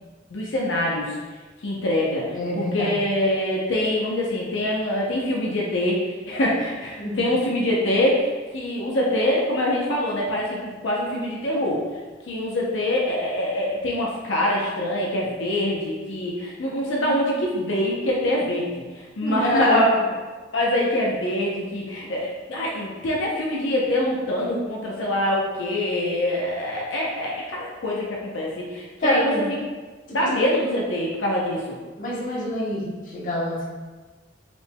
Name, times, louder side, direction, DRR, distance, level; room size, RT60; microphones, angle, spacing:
voice 1, 0.3-1.1 1.6-11.8 12.2-20.0 20.5-29.3 30.1-31.8, left 1 dB, 80° left, -3 dB, 0.7 m, -24 dB
voice 2, 2.3-3.0 7.0-7.3 19.2-19.9 29.0-29.4 30.2-30.4 32.0-33.6, left 1 dB, 45° left, -5 dB, 1.0 m, -25 dB
5.1 x 3.4 x 2.2 m, 1.3 s
head